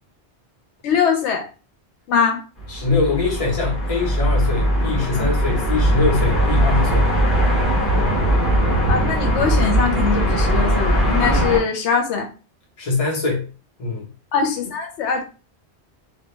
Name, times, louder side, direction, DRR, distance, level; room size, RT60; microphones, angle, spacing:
voice 1, 0.8-1.5 2.1-2.4 5.2-5.3 8.9-12.3 14.3-15.2, left 6 dB, 85° left, 4 dB, 0.9 m, -22 dB
sound 1, 2.6-11.6, right 1 dB, 50° left, 1.1 m, -19 dB
voice 2, 2.7-7.1 12.8-13.5 13.8-14.1, left 4 dB, 35° left, -2 dB, 0.8 m, -23 dB
2.3 x 2.2 x 3.0 m, 0.34 s
omnidirectional pair, 1.1 m